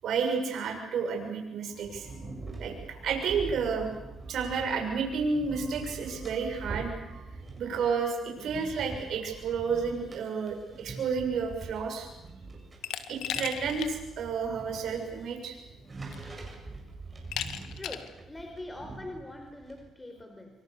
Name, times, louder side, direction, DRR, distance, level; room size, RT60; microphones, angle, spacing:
voice 1, 0.0-2.1 2.6-4.0 4.3-7.2 7.6-12.1 13.1-15.6, right 5 dB, 70° right, 3 dB, 6.9 m, -31 dB
sound 1, 1.7-19.9, right 3 dB, 30° right, 7.6 m, -44 dB
Glass, 12.8-13.9 14.3-14.4 15.6-15.7 16.1-16.5 17.3-18.1, left 11 dB, 85° left, 1.7 m, -36 dB
voice 2, 18.3-20.5, left 1 dB, 15° left, 3 dB, 4.6 m, -42 dB
27.5 x 24.5 x 6.9 m, 0.96 s
cardioid pair, 90°, 0 cm